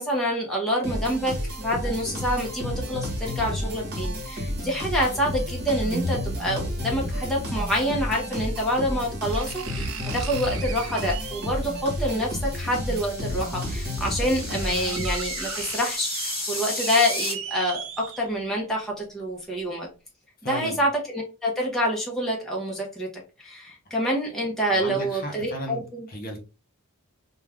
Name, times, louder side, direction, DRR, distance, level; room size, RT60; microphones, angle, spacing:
voice 1, 0.0-17.8 18.2-19.9 20.4-23.1 23.4-26.1, equal, ahead, -4 dB, 0.7 m, -27 dB
sound 1, 0.8-15.4, left 1 dB, 45° right, 1.2 m, -31 dB
sound 2, 8.4-8.5 9.3-11.7 13.0-13.1 13.8-13.9 14.1-18.5 19.0-19.1, right 8 dB, 60° right, 0.4 m, -37 dB
sound 3, 12.2-17.3, left 2 dB, 25° left, 1.4 m, -34 dB
voice 2, 20.4-20.8 24.7-26.4, equal, 40° left, 2 dB, 0.7 m, -35 dB
2.4 x 2.3 x 3.3 m, 0.32 s
head